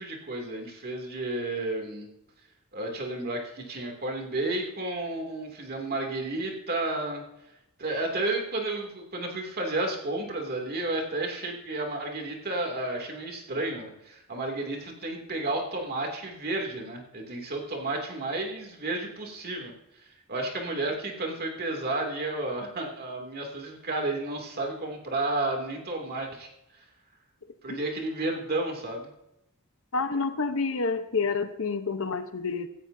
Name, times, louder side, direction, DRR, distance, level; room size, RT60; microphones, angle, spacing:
voice 1, 0.0-2.1 2.7-7.2 7.8-19.7 20.0-26.5 27.6-29.1, right 2 dB, 45° right, 1 dB, 2.7 m, -32 dB
voice 2, 29.9-32.7, left 4 dB, 65° left, 9 dB, 1.0 m, -28 dB
17.0 x 13.5 x 2.8 m, 0.86 s
head